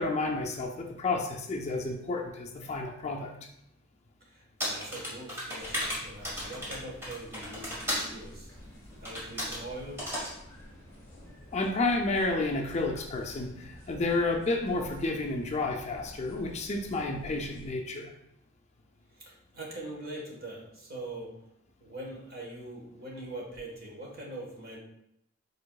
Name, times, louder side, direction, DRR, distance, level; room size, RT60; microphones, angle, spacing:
voice 1, 0.0-3.3 11.5-18.1, left 2 dB, 35° left, 2 dB, 0.4 m, -31 dB
voice 2, 4.2-8.6 9.0-10.1 19.1-21.3 21.8-24.8, right 1 dB, 50° right, -2 dB, 1.4 m, -42 dB
sound 1, 4.6-8.1 9.1-9.6 10.0-10.3, equal, 10° right, 1.5 m, -34 dB
sound 2, 5.6-17.8, equal, 15° left, 1.5 m, -50 dB
4.9 x 4.6 x 2.3 m, 0.78 s
head